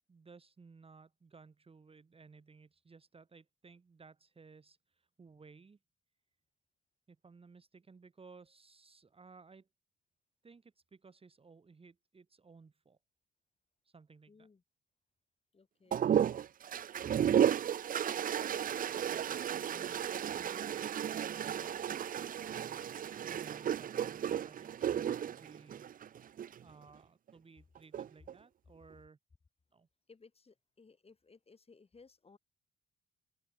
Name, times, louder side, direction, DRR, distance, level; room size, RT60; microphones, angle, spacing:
voice 1, 0.1-5.8 7.1-9.7 10.4-13.0 13.8-14.5 19.7-20.0 20.3-25.9 26.6-29.2 29.7-29.9, right 4 dB, 30° right, 1.8 m, -58 dB
voice 2, 14.3-14.6 15.5-16.0 18.5-19.6 30.1-32.4, left 4 dB, 30° left, 6.6 m, -61 dB
sound 1, 15.9-26.6 27.8-28.3, right 9 dB, 45° right, 0.5 m, -33 dB
cardioid pair, 90°, 20 cm